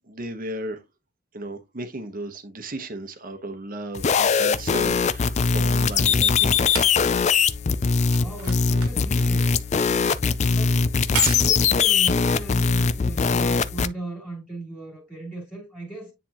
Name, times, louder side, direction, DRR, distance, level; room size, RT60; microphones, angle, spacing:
voice 1, 0.1-0.8 1.3-6.6, right 1 dB, 40° right, 1.0 m, -35 dB
sound 1, 3.9-13.9, left 5 dB, 30° left, 0.4 m, -21 dB
sound 2, 4.8-13.4 14.3-14.4, right 7 dB, 90° right, 1.7 m, -37 dB
voice 2, 8.1-9.5 10.5-16.1, right 2 dB, 5° left, 2.6 m, -37 dB
9.8 x 3.5 x 2.9 m
head